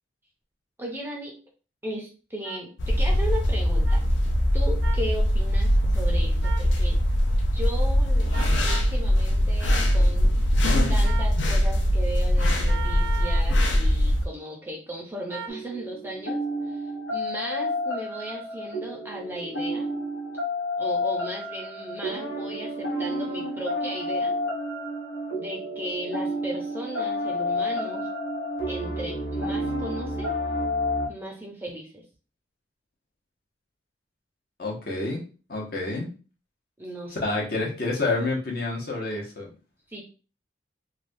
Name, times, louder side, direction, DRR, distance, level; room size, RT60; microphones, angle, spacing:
voice 1, 0.8-1.4 1.8-4.0 4.5-7.0 7.5-10.6 10.9-19.9 20.8-24.4 25.3-28.1 28.7-30.3 31.1-32.0 36.8-37.2 39.9-40.0, equal, 10° right, -1 dB, 0.5 m, -36 dB
sound 1, 2.4-2.6 3.9-4.0 4.8-5.1 6.4-6.7 8.3-8.9 11.0-11.4 12.7-13.5 15.3-15.6, right 6 dB, 60° right, 0.5 m, -37 dB
sound 2, 2.8-14.3, equal, 70° left, 0.5 m, -22 dB
sound 3, 15.5-31.1, left 1 dB, 85° left, 0.9 m, -30 dB
voice 2, 34.6-35.2 35.5-36.1 37.1-39.5, left 2 dB, 50° left, -2 dB, 0.9 m, -28 dB
3.3 x 2.2 x 2.6 m, 0.35 s
head